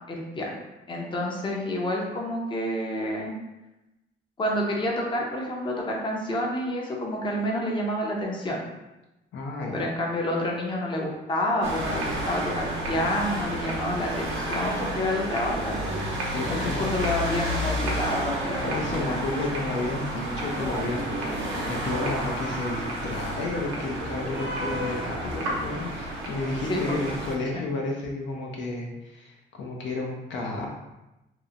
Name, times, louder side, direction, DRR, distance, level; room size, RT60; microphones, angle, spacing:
voice 1, 0.1-0.6 0.9-3.3 4.4-8.6 9.7-15.9 16.5-19.4 26.7-27.0 27.5-27.7, left 1 dB, 25° left, -2 dB, 0.6 m, -29 dB
voice 2, 9.3-9.8 16.2-16.9 18.6-30.7, left 2 dB, 70° left, -1 dB, 0.5 m, -32 dB
sound 1, 11.6-27.3, right 1 dB, 80° right, 0.7 m, -30 dB
2.9 x 2.0 x 2.4 m, 0.97 s
cardioid pair, 90°, 20 cm